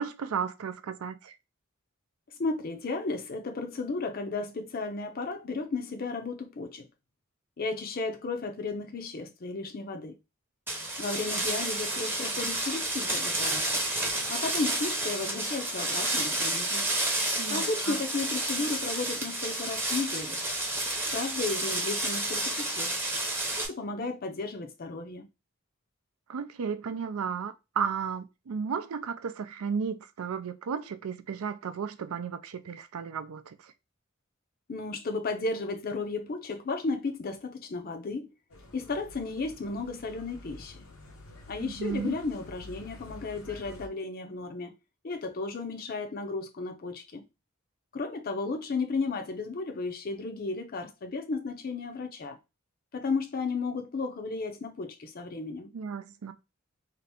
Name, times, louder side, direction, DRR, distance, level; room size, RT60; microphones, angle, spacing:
voice 1, 0.0-1.3 17.4-17.9 26.3-33.7 41.6-42.2 55.7-56.3, right 6 dB, 85° right, 0.4 m, -34 dB
voice 2, 2.4-6.9 7.6-10.1 11.0-13.9 14.3-16.9 17.5-20.4 21.1-22.9 23.6-25.3 34.7-38.3 38.7-40.8 41.5-44.7 45.0-47.2 47.9-52.4 52.9-55.7, left 3 dB, 45° left, 0.5 m, -34 dB
sound 1, 10.7-23.7, right 1 dB, 10° right, 0.7 m, -30 dB
sound 2, 38.5-43.9, left 2 dB, 90° left, 0.9 m, -49 dB
2.8 x 2.5 x 3.4 m
head